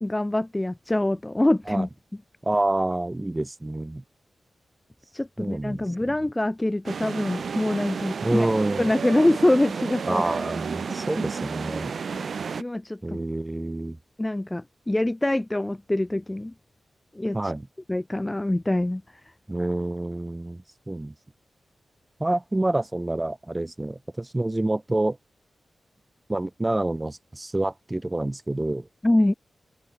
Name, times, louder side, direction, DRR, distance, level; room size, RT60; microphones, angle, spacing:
voice 1, 0.0-1.9 5.1-8.5 8.8-10.2 12.1-12.3 12.6-13.2 14.2-16.5 17.1-17.5 17.9-19.0 29.0-29.3, left 1 dB, 15° left, 1.8 m, -24 dB
voice 2, 2.4-4.0 5.4-5.9 8.2-8.9 10.1-11.9 13.0-14.0 17.3-17.7 19.5-21.1 22.2-25.2 26.3-28.9, right 2 dB, 15° right, 1.3 m, -27 dB
sound 1, 6.9-12.6, right 6 dB, 60° right, 2.5 m, -32 dB
wide cardioid pair, 125°, 0 cm